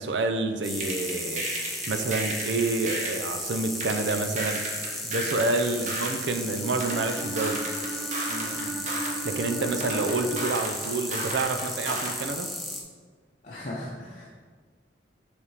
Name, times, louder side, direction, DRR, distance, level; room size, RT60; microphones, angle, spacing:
voice 1, 0.0-4.7 5.0-7.7 9.2-12.5, right 3 dB, 85° right, 7 dB, 0.6 m, -28 dB
sound 1, 0.6-12.8, left 1 dB, ahead, 0.7 m, -35 dB
sound 2, 0.8-3.3 3.8-6.2 6.8-9.2 9.8-12.2, right 2 dB, 40° right, 1.1 m, -33 dB
Bowed string instrument, 6.8-10.8, right 2 dB, 70° right, 1.2 m, -37 dB
voice 2, 8.3-8.8 9.6-9.9 13.4-14.3, left 1 dB, 45° left, -5 dB, 0.7 m, -39 dB
7.2 x 3.6 x 4.8 m, 1.5 s
head